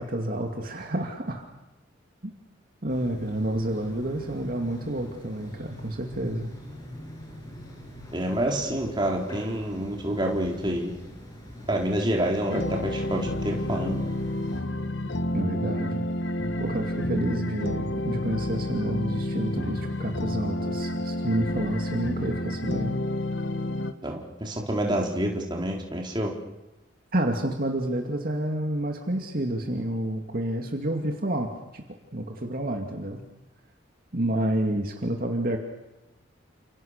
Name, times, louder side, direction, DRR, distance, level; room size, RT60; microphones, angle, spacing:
voice 1, 0.0-1.5 2.2-2.3 2.8-6.5 15.3-16.1 16.6-23.0 27.1-31.8 32.1-33.2 34.1-35.6, right 1 dB, 45° right, 3 dB, 2.5 m, -29 dB
sound 1, 2.9-14.6, equal, 20° left, 7.4 m, -43 dB
voice 2, 8.1-10.9 11.7-14.0 24.0-26.3, right 1 dB, 25° right, 0 dB, 4.2 m, -28 dB
sound 2, 12.5-23.9, left 1 dB, 60° left, 1.5 m, -30 dB
29.5 x 28.0 x 6.7 m, 0.99 s
head